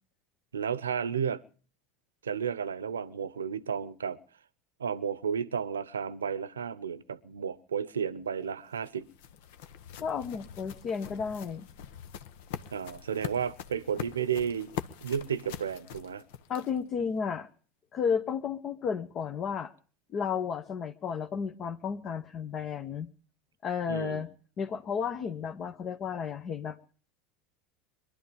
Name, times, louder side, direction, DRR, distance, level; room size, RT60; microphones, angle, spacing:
voice 1, 0.5-1.4 2.2-4.2 4.8-9.1 12.7-14.7 15.0-16.2 23.9-24.2, right 7 dB, 90° right, 0.8 m, -32 dB
sound 1, 8.4-16.9, left 9 dB, 70° left, 1.0 m, -43 dB
voice 2, 10.0-11.7 16.5-17.5 17.9-19.7 20.1-23.1 23.6-24.3 24.6-26.9, left 6 dB, 40° left, 1.1 m, -33 dB
22.5 x 11.5 x 5.3 m
hypercardioid pair, 85°, 0 cm